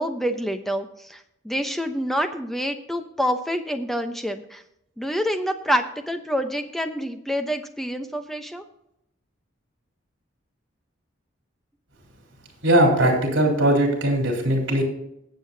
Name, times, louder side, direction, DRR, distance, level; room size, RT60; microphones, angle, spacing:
voice 1, 0.0-4.6 5.0-8.6, equal, ahead, 6 dB, 0.8 m, -27 dB
voice 2, 12.6-14.8, right 1 dB, 65° right, 0 dB, 4.0 m, -19 dB
20.0 x 7.9 x 2.8 m, 0.79 s
head